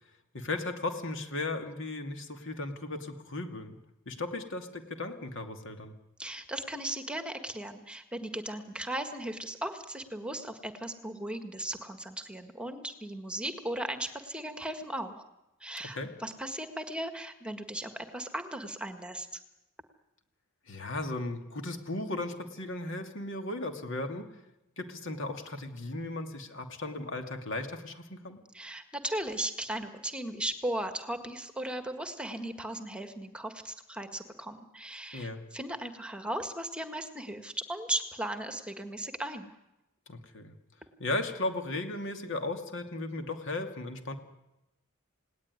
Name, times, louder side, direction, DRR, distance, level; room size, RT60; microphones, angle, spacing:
voice 1, 0.3-3.7 4.1-5.9 16.0-16.1 20.7-24.3 24.8-28.4 35.1-35.4 40.1-40.5 41.0-44.1, left 2 dB, 60° left, 6 dB, 2.6 m, -36 dB
voice 2, 6.2-15.3 15.6-19.4 28.5-39.5, right 1 dB, 5° right, 7 dB, 1.6 m, -37 dB
29.0 x 18.0 x 9.7 m, 0.96 s
head